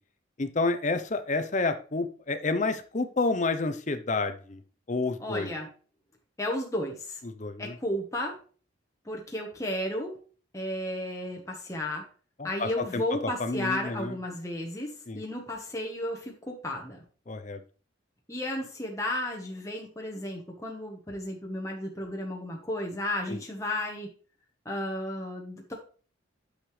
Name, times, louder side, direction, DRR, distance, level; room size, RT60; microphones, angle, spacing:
voice 1, 0.4-4.6 4.9-5.5 7.2-7.8 12.4-14.1 15.1-15.2 17.3-17.6 23.3-23.4, left 3 dB, 35° left, 10 dB, 0.6 m, -29 dB
voice 2, 5.2-5.7 6.4-7.2 7.6-8.4 9.0-10.2 10.5-12.0 12.4-17.0 18.3-24.1 24.6-25.7, left 1 dB, 15° left, 0 dB, 1.1 m, -33 dB
9.0 x 6.6 x 3.2 m, 0.40 s
head